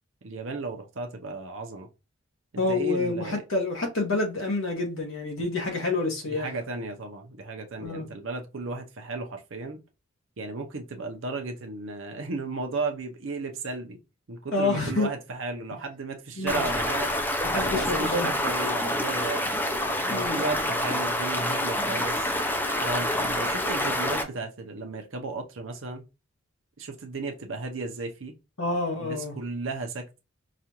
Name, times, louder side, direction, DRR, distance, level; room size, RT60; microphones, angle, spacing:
voice 1, 0.2-1.9 2.5-3.4 6.3-9.8 10.4-14.0 14.3-17.1 17.6-19.5 20.1-22.3 22.8-26.0 26.8-28.3 29.0-30.2, right 3 dB, 60° right, 0.6 m, -34 dB
voice 2, 2.6-6.5 7.8-8.1 14.5-15.1 16.4-16.6 17.4-18.3 20.1-20.4 28.6-29.3, left 3 dB, 65° left, 1.3 m, -28 dB
Stream, 16.5-24.2, left 1 dB, 10° left, 0.4 m, -27 dB
4.9 x 2.4 x 2.9 m
head